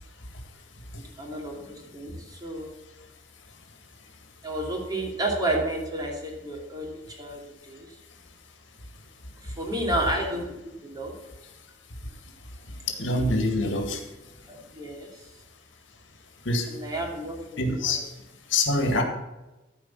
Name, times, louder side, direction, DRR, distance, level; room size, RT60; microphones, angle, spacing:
voice 1, 1.2-2.7 4.4-7.9 9.4-10.5 10.8-11.1 13.2-13.3 14.5-15.1 16.7-18.0, right 1 dB, 20° right, -1 dB, 2.7 m, -31 dB
voice 2, 13.0-14.0 16.5-16.7 17.6-18.0 18.5-19.0, left 2 dB, 80° left, 4 dB, 1.9 m, -24 dB
14.0 x 5.0 x 7.3 m, 1.0 s
head